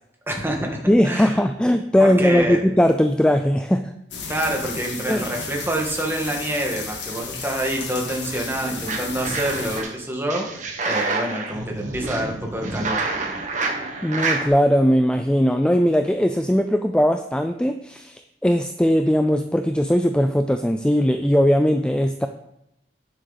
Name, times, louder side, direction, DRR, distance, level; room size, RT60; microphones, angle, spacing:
voice 1, 0.3-0.8 1.0-1.4 2.0-2.6 4.3-13.0, right 1 dB, 15° right, 0 dB, 1.7 m, -27 dB
voice 2, 0.9-3.8 5.1-5.3 14.0-22.3, equal, 5° left, 7 dB, 0.4 m, -19 dB
sound 1, 4.1-9.8, left 5 dB, 85° left, 1.8 m, -33 dB
sound 2, 8.6-9.9 10.3-14.5, right 3 dB, 45° right, 1.4 m, -28 dB
9.5 x 7.5 x 4.1 m, 0.82 s
head